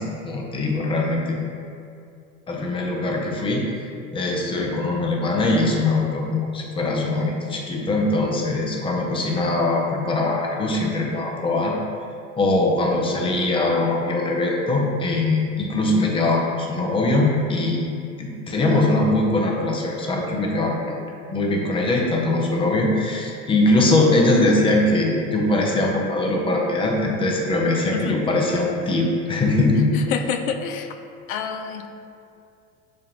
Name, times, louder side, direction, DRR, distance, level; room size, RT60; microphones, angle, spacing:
voice 1, 0.0-1.4 2.5-3.6 4.1-11.8 12.4-21.0 21.3-29.9, left 2 dB, 10° left, -1 dB, 0.5 m, -22 dB
voice 2, 29.9-30.9 31.3-32.0, left 7 dB, 65° left, 6 dB, 0.5 m, -28 dB
7.1 x 2.4 x 2.8 m, 2.4 s
hypercardioid pair, 85°, 45 cm